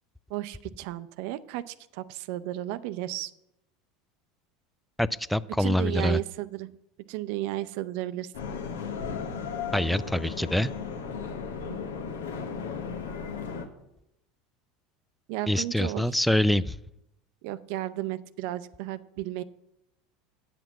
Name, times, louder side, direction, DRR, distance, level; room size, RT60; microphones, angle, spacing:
voice 1, 0.3-3.3 5.6-6.7 7.1-8.3 15.3-16.2 17.4-19.4, right 15 dB, 65° right, 14 dB, 0.5 m, -33 dB
voice 2, 5.0-6.2 9.7-10.7 15.5-16.8, left 1 dB, ahead, 18 dB, 0.3 m, -25 dB
sound 1, 8.3-13.7, left 6 dB, 85° left, 1.1 m, -35 dB
8.9 x 6.0 x 7.3 m, 0.84 s
hypercardioid pair, 90°, 0 cm